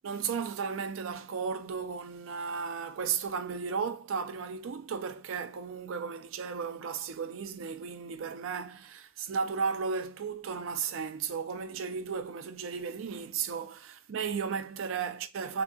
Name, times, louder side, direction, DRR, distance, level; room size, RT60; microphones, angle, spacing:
voice 1, 0.0-15.6, right 6 dB, 85° right, 0.4 m, -34 dB
3.5 x 2.7 x 2.3 m
head